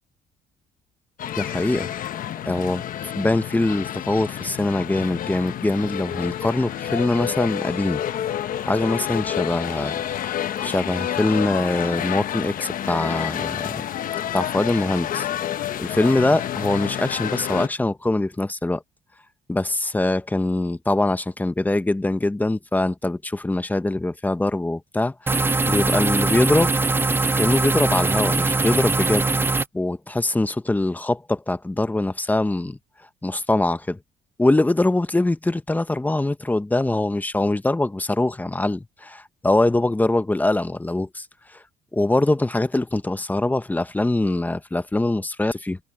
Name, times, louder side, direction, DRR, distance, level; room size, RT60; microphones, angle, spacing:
sound 1, 1.2-17.7, left 10 dB, 55° left, 1.1 m, -29 dB
voice 1, 1.4-1.9 2.5-8.0 8.6-9.9 10.6-13.8 14.3-15.3 15.8-18.8 19.5-25.3 25.7-26.7 27.4-29.3 29.7-32.8 33.2-34.0 34.4-41.3 41.9-45.8, left 2 dB, 10° left, 1.1 m, -23 dB
sound 2, 25.3-29.7, right 3 dB, 15° right, 0.6 m, -21 dB
cardioid pair, 110°, 17 cm